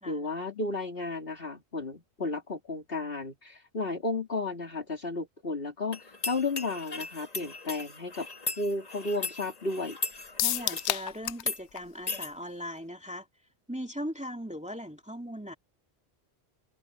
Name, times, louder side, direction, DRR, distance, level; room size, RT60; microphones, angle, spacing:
voice 1, 0.0-8.3 8.6-10.0, left 3 dB, 55° left, 3.2 m, -33 dB
sound 1, 5.9-10.9 11.4-11.6 12.1-12.3, left 3 dB, 35° left, 1.7 m, -37 dB
sound 2, 10.4-11.5 11.8-11.9 12.2-12.3, left 13 dB, 80° left, 0.9 m, -29 dB
voice 2, 10.4-13.3 13.7-15.5, equal, 5° right, 2.4 m, -39 dB
omnidirectional pair, 1.1 m